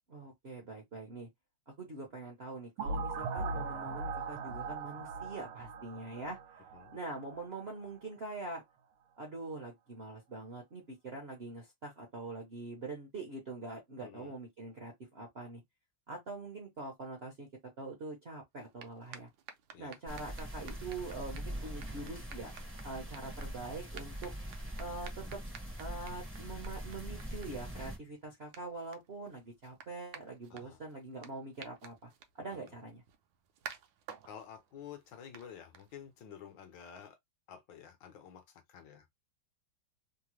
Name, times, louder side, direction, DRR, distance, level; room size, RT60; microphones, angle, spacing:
voice 1, 0.1-1.3 1.7-6.6 6.9-8.6 9.2-15.6 16.1-17.5 17.8-19.3 19.8-22.5 22.8-24.3 24.8-25.4 25.8-32.1 32.4-33.0, right 3 dB, 55° right, 0.7 m, -44 dB
sound 1, 2.8-7.5, right 3 dB, 90° right, 1.5 m, -39 dB
voice 2, 14.0-14.3 19.7-20.0 30.5-30.8 32.4-32.8 34.2-37.2 37.5-39.1, left 8 dB, 70° left, 1.3 m, -51 dB
sound 2, 18.5-36.3, right 7 dB, 75° right, 1.2 m, -54 dB
sound 3, 20.1-28.0, equal, 15° right, 0.5 m, -43 dB
3.7 x 2.1 x 3.0 m
omnidirectional pair, 2.3 m